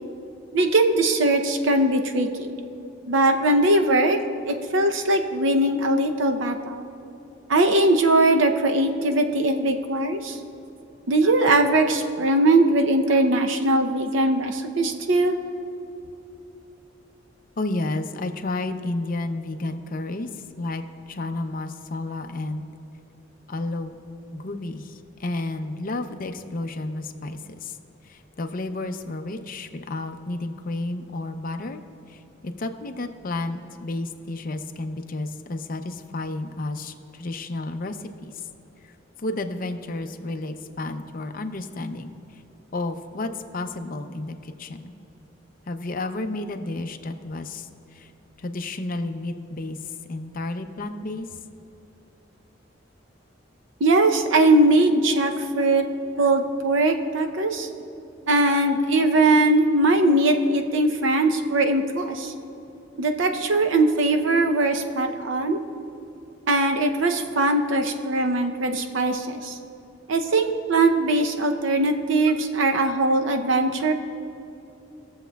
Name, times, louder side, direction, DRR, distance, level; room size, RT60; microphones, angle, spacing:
voice 1, 0.5-2.6 3.1-4.2 4.4-6.9 7.5-10.4 11.1-15.4 53.8-55.9 56.2-57.7 58.3-62.3 63.0-65.6 66.5-69.6 70.1-73.9, right 2 dB, 80° right, 5 dB, 0.6 m, -20 dB
voice 2, 17.6-22.6 23.5-24.0 24.3-27.8 28.0-31.8 32.1-38.3 38.8-38.9 39.2-42.4 42.7-44.9 45.7-48.1 48.4-51.3, left 2 dB, 45° left, 7 dB, 0.6 m, -31 dB
20.0 x 7.1 x 2.3 m, 2.9 s
head